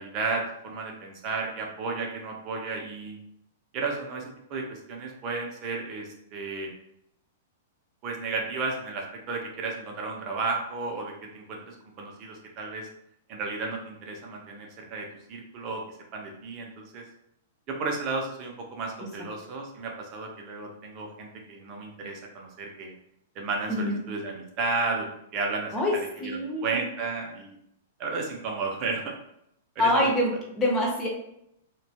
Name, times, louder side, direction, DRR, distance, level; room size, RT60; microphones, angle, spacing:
voice 1, 0.0-3.2 3.7-6.7 8.0-12.9 13.3-15.8 16.1-17.0 17.7-22.9 23.4-25.1 25.3-27.6 28.0-29.1 29.8-30.1, right 3 dB, 30° right, 1 dB, 0.5 m, -33 dB
voice 2, 26.2-26.9 29.8-31.1, left 1 dB, 15° left, -2 dB, 0.7 m, -25 dB
2.2 x 2.2 x 2.8 m, 0.76 s
hypercardioid pair, 160°, 0 cm